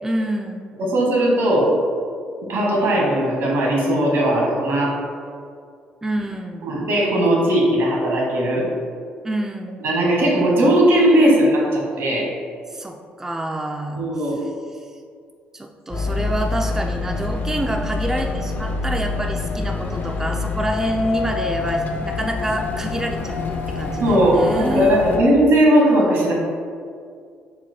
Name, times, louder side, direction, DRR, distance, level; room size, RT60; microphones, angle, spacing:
voice 1, 0.0-0.7 6.0-6.7 9.2-9.8 12.7-14.0 14.7-14.9 15.5-25.0, right 1 dB, 10° right, 2 dB, 0.3 m, -27 dB
voice 2, 0.8-1.7 2.5-4.9 6.6-8.7 9.8-12.3 14.0-14.4 24.0-26.3, right 1 dB, 70° right, -3 dB, 1.2 m, -18 dB
sound 1, 15.9-25.2, left 3 dB, 45° left, 0.5 m, -26 dB
4.1 x 2.1 x 4.3 m, 2.2 s
hypercardioid pair, 55°, 4 cm